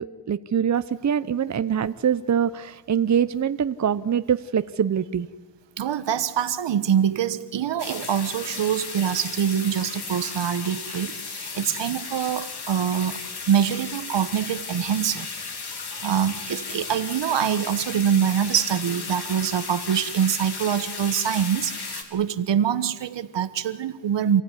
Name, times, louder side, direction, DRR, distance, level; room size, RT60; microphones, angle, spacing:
voice 1, 0.0-5.3, right 8 dB, 40° right, 13 dB, 0.8 m, -24 dB
voice 2, 5.8-15.3 16.0-24.4, right 9 dB, 70° right, 13 dB, 1.3 m, -24 dB
sound 1, 7.8-22.0, left 4 dB, 60° left, 3.8 m, -35 dB
28.5 x 16.0 x 9.8 m, 1.4 s
cardioid pair, 85°, 44 cm